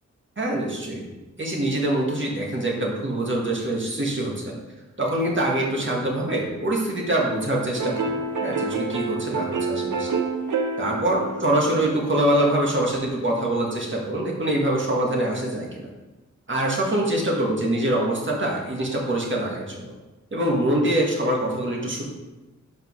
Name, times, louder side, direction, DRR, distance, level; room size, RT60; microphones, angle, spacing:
voice 1, 0.4-1.1 1.4-4.5 5.0-10.1 10.8-15.9 16.5-19.9 20.3-22.0, right 1 dB, 40° right, -2 dB, 1.8 m, -24 dB
sound 1, 7.7-12.8, right 4 dB, 85° right, 0.7 m, -29 dB
5.3 x 5.2 x 6.2 m, 1.1 s
wide cardioid pair, 100°, 30 cm